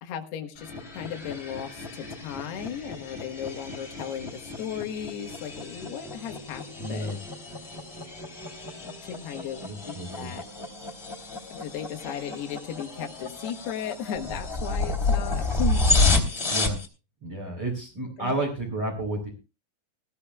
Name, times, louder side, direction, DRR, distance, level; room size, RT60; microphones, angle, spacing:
voice 1, 0.0-6.6 6.9-7.2 9.0-10.4 11.5-15.9 18.2-18.4, left 8 dB, 80° left, 5 dB, 3.6 m, -36 dB
sound 1, 0.6-16.9, left 3 dB, 15° left, 2.7 m, -30 dB
voice 2, 6.8-7.2 9.6-10.3 16.4-16.8 17.2-19.3, right 1 dB, 30° right, -3 dB, 4.6 m, -31 dB
20.0 x 15.0 x 2.4 m, 0.30 s
omnidirectional pair, 4.7 m